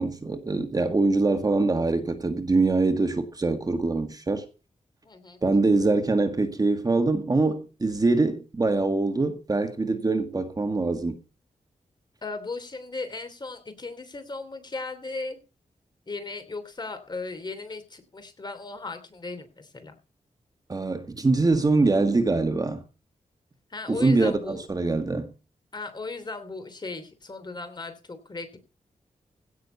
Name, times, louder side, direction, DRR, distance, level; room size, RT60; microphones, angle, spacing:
voice 1, 0.0-4.5 5.4-11.2 20.7-22.8 23.9-25.3, right 3 dB, 30° right, 1.7 m, -24 dB
voice 2, 5.0-5.4 12.2-15.4 16.1-20.0 23.7-24.7 25.7-28.6, left 3 dB, 35° left, 3.0 m, -37 dB
16.5 x 6.6 x 5.5 m
wide cardioid pair, 120°, 13 cm